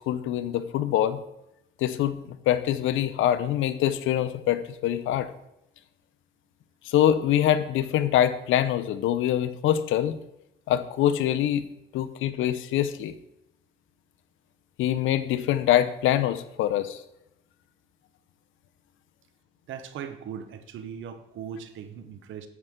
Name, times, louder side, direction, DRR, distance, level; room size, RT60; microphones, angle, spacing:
voice 1, 0.1-1.2 1.8-5.3 6.8-10.2 10.7-11.6 11.9-13.1 14.8-17.0, left 11 dB, 85° left, 14 dB, 0.6 m, -24 dB
voice 2, 19.7-22.5, right 8 dB, 75° right, 10 dB, 1.0 m, -39 dB
9.5 x 8.0 x 3.7 m, 0.85 s
cardioid pair, 90°, 20 cm